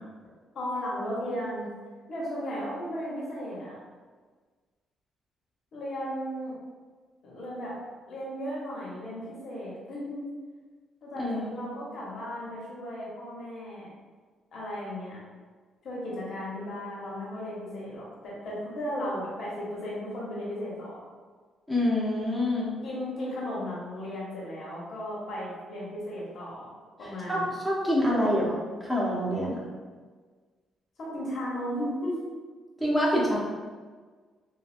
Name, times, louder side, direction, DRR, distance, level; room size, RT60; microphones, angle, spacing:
voice 1, 0.5-1.7 2.1-3.8 5.7-6.6 7.2-7.8 8.1-10.3 11.0-13.9 14.5-15.2 15.8-21.0 22.8-26.7 27.0-27.5 28.1-28.5 31.0-32.2, equal, 60° left, -6 dB, 1.0 m, -35 dB
voice 2, 11.2-11.7 21.7-22.7 27.0-28.5 28.8-29.6 32.8-33.4, left 1 dB, 5° right, -6 dB, 1.0 m, -26 dB
3.1 x 2.3 x 2.5 m, 1.5 s
cardioid pair, 90°, 0 cm